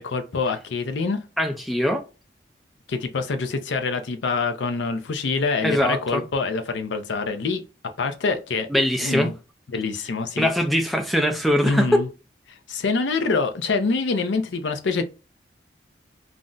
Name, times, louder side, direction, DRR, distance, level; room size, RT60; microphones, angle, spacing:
voice 1, 0.0-1.2 2.9-8.7 9.0-9.3 9.7-10.5 11.6-12.1 12.7-15.0, left 4 dB, 80° left, 0.5 m, -25 dB
voice 2, 1.4-2.0 5.6-6.2 8.7-9.3 10.4-12.0, equal, ahead, 0.3 m, -22 dB
2.5 x 2.1 x 3.7 m
head